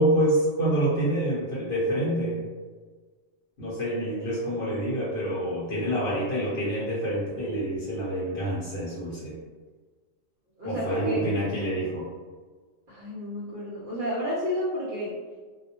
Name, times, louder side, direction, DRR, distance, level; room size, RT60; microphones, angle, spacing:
voice 1, 0.0-2.4 3.6-9.4 10.6-12.0, right 1 dB, 50° left, -9 dB, 0.9 m, -27 dB
voice 2, 10.6-11.3 12.9-15.2, equal, 55° right, -8 dB, 0.6 m, -31 dB
2.4 x 2.0 x 2.8 m, 1.5 s
omnidirectional pair, 1.4 m